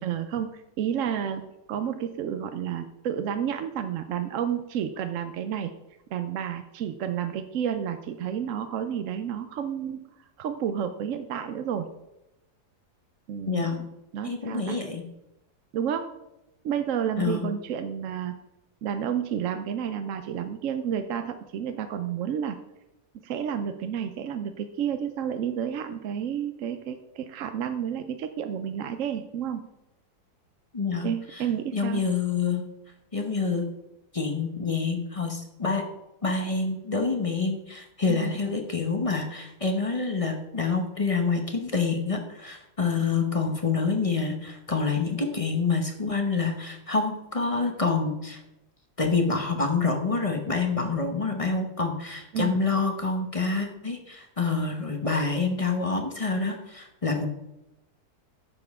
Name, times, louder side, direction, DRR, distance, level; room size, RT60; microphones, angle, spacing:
voice 1, 0.0-1.4 1.7-5.7 6.1-10.1 10.4-11.9 13.3-13.9 14.1-14.8 15.7-16.1 16.6-18.3 18.8-22.6 23.2-29.6 31.0-32.0 38.1-38.4 52.3-52.6, right 8 dB, 65° right, 8 dB, 0.8 m, -30 dB
voice 2, 13.5-13.8 14.2-15.0 17.2-17.5 30.7-31.1 31.4-31.5 31.7-32.6 33.1-33.6 34.1-35.8 36.2-48.4 49.0-57.3, left 4 dB, 25° left, 4 dB, 0.8 m, -27 dB
10.5 x 7.0 x 3.5 m, 0.91 s
omnidirectional pair, 1.8 m